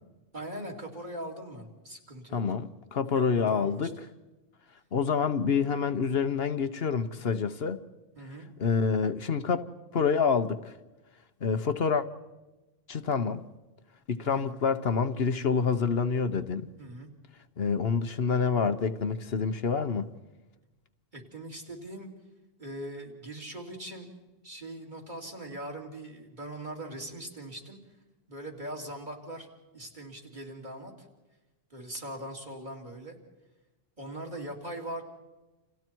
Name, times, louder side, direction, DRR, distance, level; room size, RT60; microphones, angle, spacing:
voice 1, 0.3-2.4 3.1-3.9 8.2-8.5 14.2-14.6 16.8-17.1 21.1-22.1 22.6-24.1 24.4-27.8 28.3-29.5 29.7-31.1 31.7-33.2 34.0-35.0, right 1 dB, 45° right, 3.7 m, -41 dB
voice 2, 2.3-3.9 4.9-7.8 8.6-9.7 9.9-10.7 11.4-12.1 12.9-13.4 14.1-16.7 17.6-20.1, left 5 dB, 65° left, 1.2 m, -27 dB
29.5 x 29.0 x 4.6 m
omnidirectional pair, 1.1 m